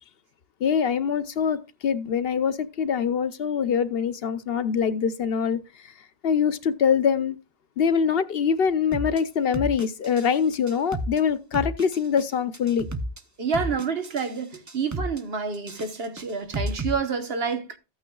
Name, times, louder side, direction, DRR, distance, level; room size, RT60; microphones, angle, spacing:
voice 1, 0.6-5.9 6.2-7.4 7.8-12.9, left 7 dB, 65° left, 0.9 m, -24 dB
sound 1, 8.9-9.2 9.5-10.3 10.5-11.2 11.5-12.2 12.5-13.2 13.5-14.3 14.5-15.2 15.5-16.9, right 1 dB, 20° right, 0.6 m, -31 dB
voice 2, 13.4-17.8, right 5 dB, 60° right, 1.4 m, -28 dB
14.0 x 8.8 x 2.3 m
omnidirectional pair, 1.1 m